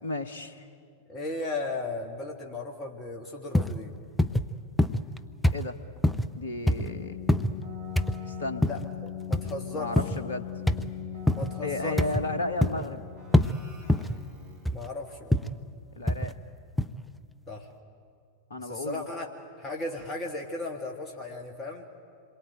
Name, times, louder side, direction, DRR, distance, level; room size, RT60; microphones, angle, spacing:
voice 1, 0.0-0.7 5.5-5.8 6.3-7.2 8.2-8.7 9.7-10.5 11.6-13.0 16.0-16.3 18.5-19.1, left 2 dB, 65° left, 10 dB, 1.3 m, -33 dB
voice 2, 1.1-3.9 8.6-9.9 11.3-12.0 14.7-15.3 17.5-17.7 18.6-19.3 19.6-21.9, left 2 dB, 25° left, 2 dB, 2.1 m, -36 dB
sound 1, 3.5-3.8 4.2-4.5 4.8-5.2 5.4-5.6 6.0-6.3 6.7-6.9 7.3-7.5 8.0-8.2 8.6-8.9 9.3-9.5 10.0-10.2 10.7-10.9 11.3-11.5 12.0-12.3 12.6-12.9 13.3-13.5 13.9-14.2 14.6-14.9 15.3-15.5 16.1-16.3 16.8-16.9, left 1 dB, 5° left, 0.7 m, -24 dB
Keyboard (musical), 6.7-14.8, left 8 dB, 45° right, 6.6 m, -40 dB
27.0 x 22.5 x 9.0 m, 2.2 s
figure-of-eight pair, 90°, 0 cm